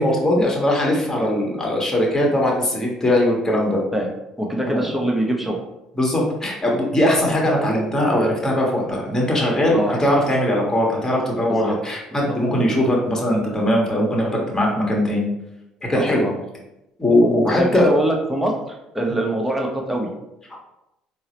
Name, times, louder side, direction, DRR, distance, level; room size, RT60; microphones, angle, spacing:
voice 1, 0.0-3.8 4.6-4.8 6.0-15.3 15.9-16.2 17.0-17.9, left 1 dB, 20° left, -2 dB, 1.1 m, -20 dB
voice 2, 4.4-5.6 9.7-10.0 11.5-11.8 12.1-12.4 15.9-16.4 17.4-20.1, right 1 dB, 5° right, 0 dB, 0.8 m, -24 dB
3.7 x 2.0 x 3.0 m, 0.89 s
hypercardioid pair, 65°, 3 cm